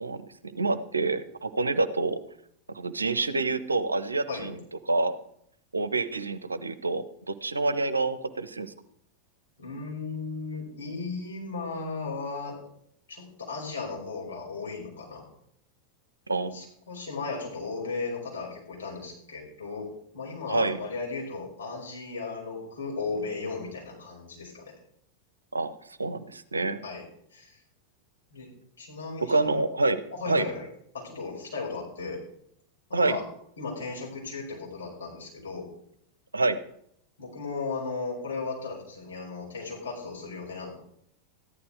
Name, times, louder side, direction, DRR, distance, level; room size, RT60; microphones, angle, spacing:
voice 1, 0.0-2.2 2.7-5.2 5.7-8.7 16.3-16.7 20.5-20.8 25.5-26.8 29.3-30.0 30.3-30.5 32.9-33.2 36.3-36.6, right 3 dB, 80° right, 13 dB, 0.8 m, -27 dB
voice 2, 9.6-12.6 13.1-15.2 16.5-19.9 20.1-24.7 26.8-27.0 27.3-27.6 28.3-28.5 28.8-29.6 30.1-30.7 30.9-32.2 32.9-33.2 33.6-35.7 37.2-40.7, left 4 dB, 65° left, -2 dB, 5.6 m, -36 dB
14.0 x 11.5 x 4.7 m, 0.70 s
figure-of-eight pair, 90°, 0 cm